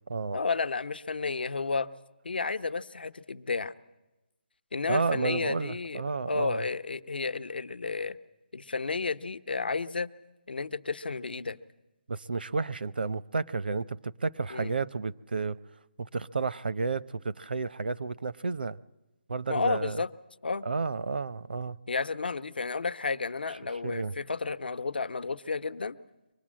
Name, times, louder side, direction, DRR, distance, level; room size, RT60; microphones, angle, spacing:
voice 1, 0.3-1.9 2.2-3.7 4.7-6.0 6.3-8.2 8.5-10.1 10.5-11.6 14.5-14.7 19.5-20.1 20.4-20.6 21.9-26.0, left 4 dB, 70° left, 1.0 m, -32 dB
voice 2, 4.9-6.6 12.1-15.6 16.0-18.8 19.3-20.0 20.6-21.8 23.8-24.1, right 4 dB, 70° right, 0.7 m, -31 dB
24.5 x 19.5 x 7.5 m
hypercardioid pair, 175°, 5 cm